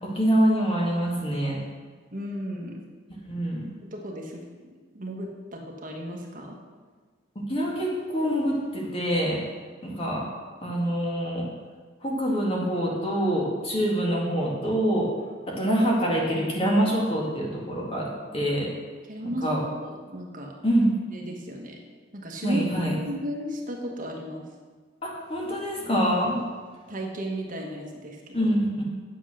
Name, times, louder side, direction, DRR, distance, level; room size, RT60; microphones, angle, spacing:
voice 1, 0.0-1.6 3.3-3.7 7.5-9.4 9.8-10.3 10.6-11.5 12.0-15.1 15.5-18.7 19.4-19.6 20.6-20.9 22.4-22.9 25.0-26.4 28.3-28.8, equal, 30° left, -2 dB, 2.2 m, -25 dB
voice 2, 2.1-2.9 3.9-4.4 4.9-6.5 19.1-20.5 21.1-21.8 22.1-24.4 26.9-28.5, equal, 45° right, 0 dB, 1.4 m, -35 dB
9.0 x 7.9 x 6.3 m, 1.5 s
head